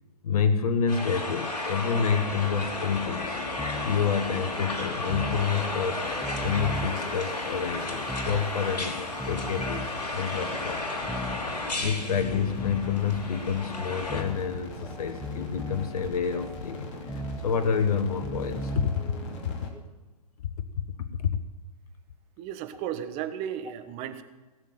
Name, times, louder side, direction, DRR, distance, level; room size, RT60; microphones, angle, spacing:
voice 1, 0.2-3.4 3.8-6.0 6.4-10.8 11.8-19.0 21.0-21.4, left 6 dB, 65° left, 10 dB, 1.2 m, -28 dB
sound 1, 0.9-14.2, left 2 dB, 80° left, 3.2 m, -33 dB
sound 2, 2.2-19.7, left 2 dB, 50° left, 2.9 m, -41 dB
sound 3, 3.5-19.8, equal, ahead, 0.8 m, -39 dB
voice 2, 22.4-24.2, right 10 dB, 30° right, 11 dB, 1.3 m, -34 dB
18.0 x 7.4 x 9.2 m, 1.2 s
hypercardioid pair, 120°, 20 cm